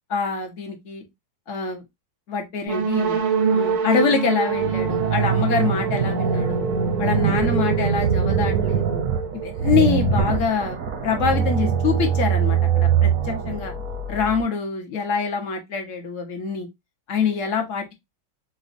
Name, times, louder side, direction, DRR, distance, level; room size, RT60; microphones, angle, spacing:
voice 1, 0.1-1.1 1.5-1.8 2.3-3.2 3.5-6.6 7.0-9.0 9.3-10.8 11.0-13.7 14.1-16.7 17.1-17.9, left 6 dB, 55° left, 0.9 m, -25 dB
sound 1, 2.7-10.4, right 6 dB, 85° right, 1.5 m, -27 dB
sound 2, 4.5-14.4, right 7 dB, 65° right, 0.8 m, -23 dB
4.9 x 2.1 x 2.5 m
omnidirectional pair, 2.0 m